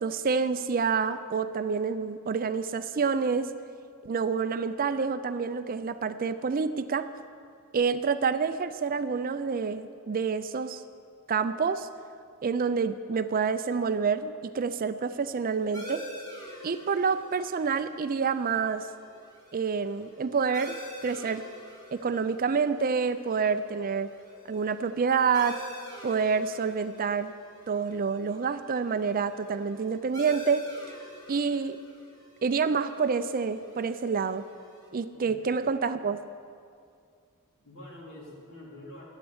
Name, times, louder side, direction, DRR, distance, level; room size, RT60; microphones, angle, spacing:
voice 1, 0.0-3.5 4.0-7.1 7.7-10.8 11.3-11.9 12.4-16.0 16.6-18.9 19.5-21.4 21.9-24.1 24.5-25.6 26.0-27.3 27.7-30.7 31.3-31.8 32.4-34.4 34.9-36.2, right 5 dB, 40° right, 12 dB, 0.4 m, -28 dB
sound 1, 15.7-34.9, equal, 20° left, 2.5 m, -47 dB
voice 2, 35.1-35.5 37.6-39.1, left 1 dB, 60° left, -4 dB, 3.6 m, -46 dB
11.5 x 10.0 x 8.0 m, 2.3 s
head